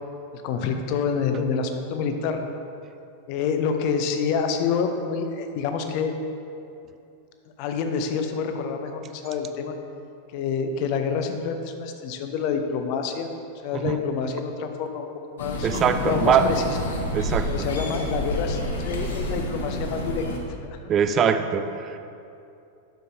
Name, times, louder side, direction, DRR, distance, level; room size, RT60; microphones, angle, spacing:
voice 1, 0.4-2.4 3.3-6.1 7.6-9.7 10.3-13.3 13.6-16.8 17.4-20.2 20.6-20.8, left 6 dB, 45° left, 6 dB, 0.6 m, -27 dB
sound 1, 15.4-20.4, left 1 dB, 65° left, 0.9 m, -29 dB
voice 2, 15.6-16.5 17.1-17.5 20.9-22.0, right 7 dB, 30° right, 9 dB, 0.4 m, -22 dB
10.0 x 6.9 x 2.7 m, 2.6 s
figure-of-eight pair, 90°, 0 cm